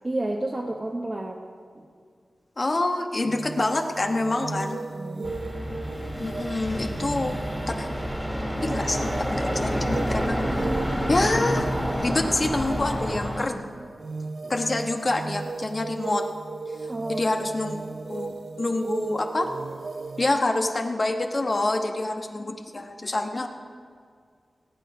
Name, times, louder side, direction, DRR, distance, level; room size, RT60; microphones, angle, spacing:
voice 1, 0.0-1.4 1.7-1.8 4.9-5.3 9.3-9.6 13.5-13.6 14.4-14.5 16.9-17.8, right 1 dB, 30° right, -1 dB, 1.1 m, -32 dB
voice 2, 2.6-4.8 6.2-7.4 7.7-7.9 8.6-10.4 11.1-11.7 12.0-13.5 14.5-16.3 17.1-19.5 20.2-23.5, left 2 dB, 40° left, 4 dB, 1.1 m, -26 dB
sound 1, 3.2-20.4, right 4 dB, 60° right, 0.4 m, -36 dB
sound 2, 5.2-13.4, equal, ahead, 1.8 m, -28 dB
18.5 x 8.5 x 5.2 m, 2.1 s
wide cardioid pair, 90°, 0 cm